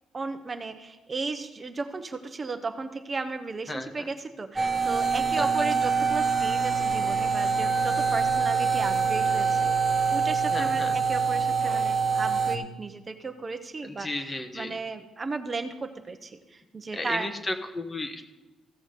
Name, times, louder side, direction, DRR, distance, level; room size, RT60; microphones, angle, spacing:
voice 1, 0.1-9.7 10.1-17.3, right 3 dB, 30° right, 7 dB, 0.9 m, -35 dB
voice 2, 3.7-4.1 5.4-5.5 10.5-11.0 13.8-14.7 16.9-18.2, left 2 dB, 25° left, 8 dB, 1.1 m, -34 dB
sound 1, 4.6-12.6, right 5 dB, 15° right, 1.4 m, -25 dB
15.5 x 6.1 x 5.1 m, 1.1 s
cardioid pair, 90°, 0 cm